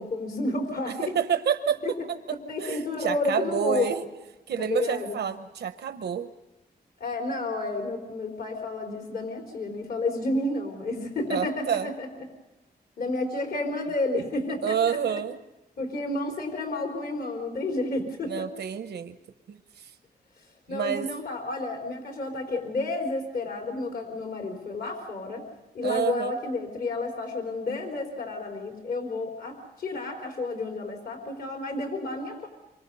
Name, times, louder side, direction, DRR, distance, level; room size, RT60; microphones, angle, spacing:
voice 1, 0.0-1.1 1.8-1.9 2.5-3.9 4.6-5.2 7.0-12.1 13.0-15.2 15.8-18.5 20.7-25.4 25.7-32.5, left 2 dB, 65° left, 2 dB, 4.1 m, -31 dB
voice 2, 0.9-2.0 2.6-4.0 4.5-6.3 11.3-11.9 14.6-15.4 18.2-19.2 19.5-19.9 20.7-21.1 25.8-26.3, right 8 dB, 80° right, 9 dB, 0.9 m, -28 dB
27.0 x 24.0 x 5.4 m, 1.0 s
wide cardioid pair, 115°, 17 cm